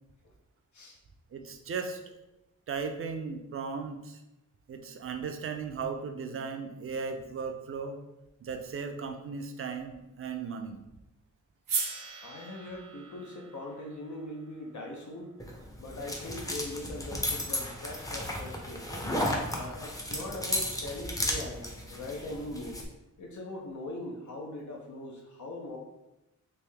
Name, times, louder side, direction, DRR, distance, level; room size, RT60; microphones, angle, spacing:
voice 1, 1.3-2.0 2.7-4.2 4.7-8.0 8.4-10.8, right 5 dB, 45° right, 6 dB, 0.4 m, -36 dB
sound 1, 11.7-15.9, right 5 dB, 85° right, 0.6 m, -39 dB
voice 2, 12.2-15.3 15.8-18.9 19.5-22.8 23.2-25.8, left 1 dB, 65° left, -1 dB, 0.6 m, -41 dB
sound 2, 15.4-22.8, left 1 dB, 10° left, 0.5 m, -34 dB
3.4 x 2.6 x 3.3 m, 0.94 s
wide cardioid pair, 115°, 31 cm